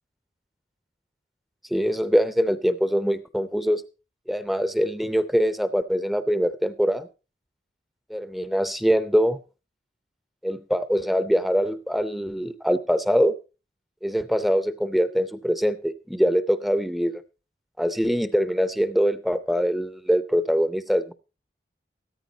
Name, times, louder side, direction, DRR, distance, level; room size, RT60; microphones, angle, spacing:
voice 1, 1.7-3.8 4.3-7.1 8.1-9.4 10.4-13.3 14.0-17.2 17.8-21.1, equal, ahead, 12 dB, 0.6 m, -23 dB
14.5 x 13.5 x 2.8 m, 0.31 s
head